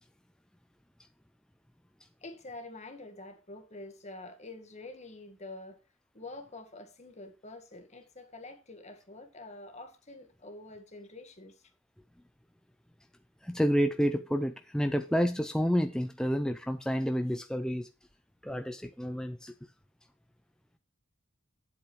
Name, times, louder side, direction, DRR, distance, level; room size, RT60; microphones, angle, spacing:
voice 1, 2.2-5.8 6.1-11.6, left 2 dB, 35° left, 1.7 m, -47 dB
voice 2, 13.4-17.9 18.4-19.5, equal, 5° left, 0.5 m, -29 dB
9.5 x 8.1 x 3.2 m
head